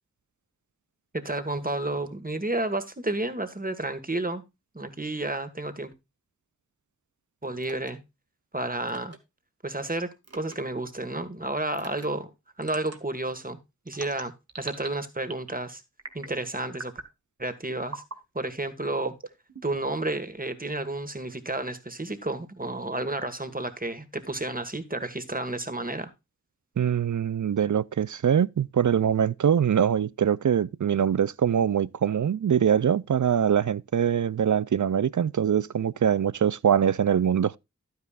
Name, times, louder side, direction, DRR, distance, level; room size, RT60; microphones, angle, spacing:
voice 1, 1.1-4.4 4.7-5.9 7.4-8.0 8.5-9.2 9.6-12.3 12.6-13.6 13.9-15.8 16.1-16.9 17.4-18.0 18.3-19.1 19.6-26.1, right 2 dB, 30° right, 1.7 m, -31 dB
sound 1, 7.6-7.9 8.9-9.2 10.2-10.6 11.7-12.1 12.6-13.0 13.9-14.9 15.2-15.6 16.0-16.4 16.7-17.1 17.9-18.2 19.0-19.9, right 3 dB, 55° right, 1.8 m, -41 dB
voice 2, 26.8-37.6, right 8 dB, 75° right, 0.5 m, -23 dB
12.0 x 9.6 x 2.4 m
wide cardioid pair, 50°, 30 cm